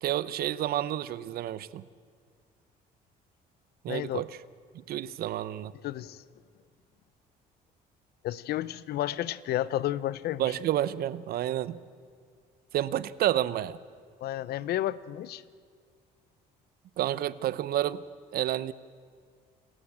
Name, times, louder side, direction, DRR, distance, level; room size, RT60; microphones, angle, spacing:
voice 1, 0.0-1.8 3.8-4.3 4.9-5.7 10.4-11.8 12.7-13.8 17.0-18.0 18.3-18.7, right 12 dB, 65° right, 18 dB, 0.7 m, -29 dB
voice 2, 3.9-4.3 5.8-6.2 8.2-10.6 14.2-15.4, left 13 dB, 70° left, 19 dB, 0.7 m, -32 dB
28.5 x 13.0 x 8.7 m, 2.1 s
cardioid pair, 110°, 17 cm